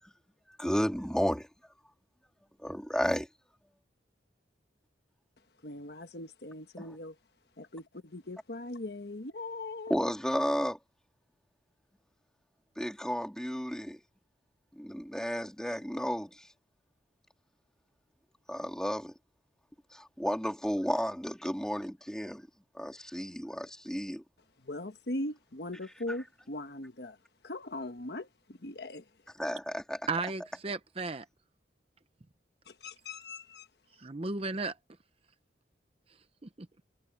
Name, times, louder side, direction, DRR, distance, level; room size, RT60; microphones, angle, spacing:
voice 1, 0.6-1.5 2.6-3.3 6.8-7.0 9.9-10.8 12.8-14.0 14.7-16.5 18.5-19.1 19.9-22.5 22.7-24.2 29.4-30.0, equal, 5° left, 3.4 m, -32 dB
voice 2, 5.6-7.1 7.6-10.1 24.6-27.2 27.4-28.3 28.6-29.0 32.7-33.7, left 2 dB, 60° left, 1.3 m, -40 dB
voice 3, 30.1-31.2 34.0-34.7 36.4-36.7, right 3 dB, 30° right, 0.7 m, -34 dB
head